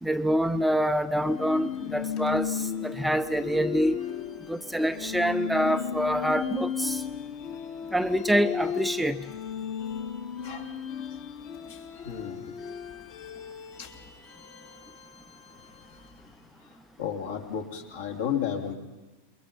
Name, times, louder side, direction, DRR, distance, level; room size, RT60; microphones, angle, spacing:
voice 1, 0.0-4.0 4.5-7.0 7.9-9.2, equal, 5° right, 9 dB, 0.7 m, -26 dB
sound 1, 1.2-16.3, left 8 dB, 45° left, 2.1 m, -35 dB
voice 2, 10.4-10.7 11.7-12.5 13.8-13.9 15.9-16.0 16.6-18.8, left 8 dB, 60° left, 4 dB, 3.1 m, -34 dB
28.5 x 22.0 x 5.4 m, 1.2 s
figure-of-eight pair, 90°, 0 cm